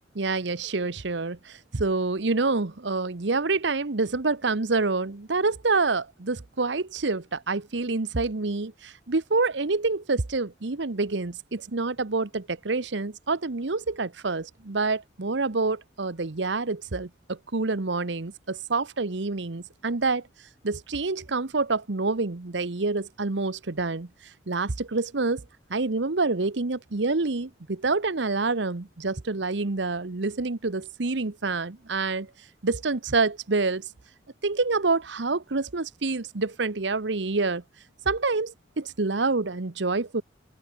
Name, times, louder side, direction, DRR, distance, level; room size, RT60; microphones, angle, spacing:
voice 1, 0.1-20.2 20.6-24.1 24.5-25.4 25.7-32.3 32.6-33.9 34.4-37.6 38.0-40.2, right 3 dB, 75° right, 1.0 m, -27 dB
open air
head